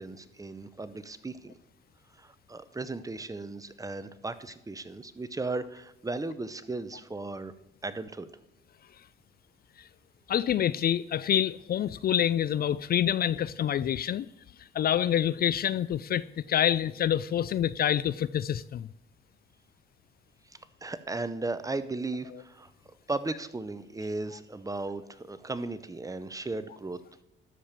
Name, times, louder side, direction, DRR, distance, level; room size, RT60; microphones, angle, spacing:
voice 1, 0.0-1.6 2.2-7.5 7.8-8.3 20.5-22.7 23.1-27.0, right 2 dB, 15° right, 0.8 m, -36 dB
voice 2, 10.3-14.3 14.7-18.9, left 10 dB, 50° left, 0.4 m, -27 dB
13.0 x 5.1 x 7.4 m
cardioid pair, 90°, 20 cm